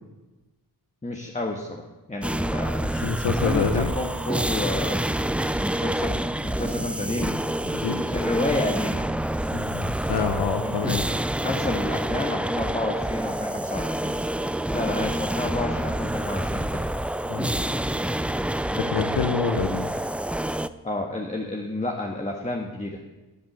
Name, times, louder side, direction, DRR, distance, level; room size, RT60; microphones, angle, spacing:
voice 1, 1.0-1.8 2.1-7.4 7.8-9.1 10.6-10.7 11.4-14.1 14.7-16.8 20.8-23.0, left 2 dB, 15° left, 1 dB, 1.6 m, -30 dB
sound 1, 2.2-20.7, right 1 dB, 5° right, 0.4 m, -27 dB
voice 2, 2.9-3.9 7.7-8.1 9.5-11.0 17.3-17.5 18.8-19.9, left 6 dB, 70° left, 5 dB, 1.1 m, -27 dB
13.0 x 7.8 x 7.4 m, 1.1 s
cardioid pair, 65°, 40 cm